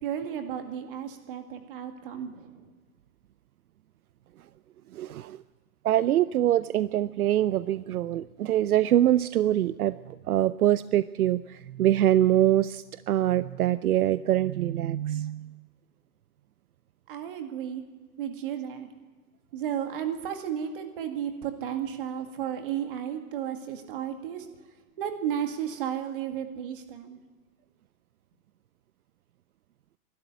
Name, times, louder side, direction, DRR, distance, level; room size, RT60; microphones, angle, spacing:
voice 1, 0.0-2.7 17.1-17.8 18.2-18.9 19.5-24.5 25.0-27.2, right 9 dB, 35° right, 6 dB, 2.0 m, -33 dB
voice 2, 4.9-5.4 5.8-15.5, right 12 dB, 75° right, 15 dB, 0.7 m, -24 dB
23.0 x 12.5 x 9.2 m, 1.4 s
hypercardioid pair, 170°, 45 cm